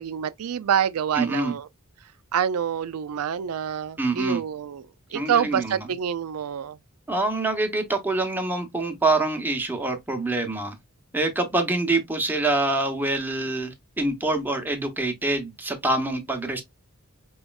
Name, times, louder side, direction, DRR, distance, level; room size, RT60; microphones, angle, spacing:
voice 1, 0.0-1.7 2.3-6.8, right 8 dB, 85° right, 0.4 m, -27 dB
voice 2, 1.1-1.5 4.0-4.4 5.1-5.8 7.1-10.7 11.1-16.6, right 2 dB, 10° right, 0.8 m, -25 dB
4.8 x 3.1 x 2.3 m
head